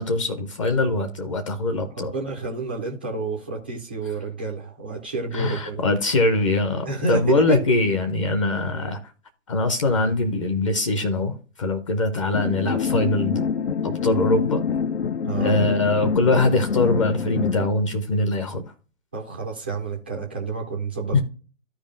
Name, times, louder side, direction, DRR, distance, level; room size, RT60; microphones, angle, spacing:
voice 1, 0.0-2.1 5.3-9.0 9.5-13.5 13.8-14.6 15.4-18.6 21.1-21.2, left 2 dB, 25° left, 0.7 m, -22 dB
voice 2, 1.9-5.8 6.8-7.6 15.2-15.6 19.1-21.2, right 3 dB, 10° right, 0.4 m, -29 dB
sound 1, 12.3-17.7, left 6 dB, 55° left, 0.5 m, -26 dB
14.0 x 4.9 x 2.5 m
figure-of-eight pair, 140°, 39 cm